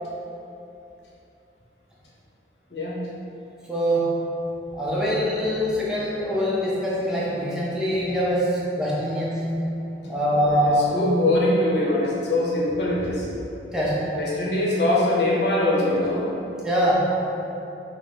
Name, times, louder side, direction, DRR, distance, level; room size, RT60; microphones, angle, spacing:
voice 1, 2.7-3.1 5.4-5.5 10.0-10.6 10.9-13.3 14.2-16.3, left 1 dB, 65° left, -5 dB, 0.8 m, -23 dB
voice 2, 3.7-4.3 4.7-9.6 10.1-10.9 13.7-14.1 16.6-17.2, equal, 5° right, -7 dB, 0.6 m, -23 dB
5.2 x 2.1 x 3.1 m, 2.8 s
head